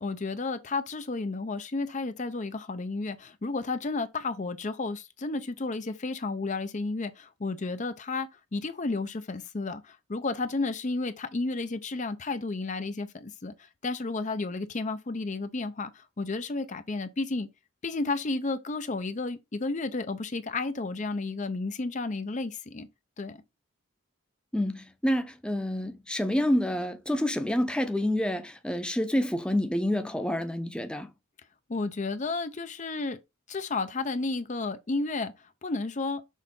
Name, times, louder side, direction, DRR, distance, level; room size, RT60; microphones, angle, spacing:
voice 1, 0.0-17.5 17.8-22.9 23.2-23.4 31.7-33.2 33.5-35.3 35.6-36.2, left 3 dB, 40° left, 0.6 m, -32 dB
voice 2, 24.5-31.1, left 1 dB, 5° left, 0.7 m, -28 dB
6.4 x 3.9 x 5.4 m
head